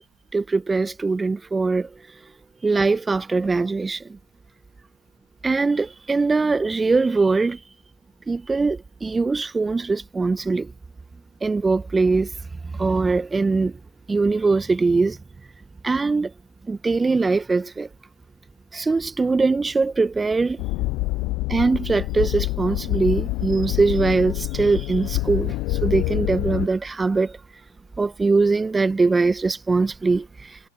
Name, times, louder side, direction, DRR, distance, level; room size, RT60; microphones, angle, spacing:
voice 1, 0.3-1.9 2.6-4.2 5.4-7.6 8.3-10.7 11.4-12.3 12.7-13.8 14.1-15.2 15.8-16.3 16.7-17.9 18.7-20.6 21.5-27.4 28.0-30.6, right 3 dB, 10° right, 1.6 m, -22 dB
sound 1, 20.6-26.7, left 21 dB, 45° left, 0.7 m, -26 dB
figure-of-eight pair, 95°, 0 cm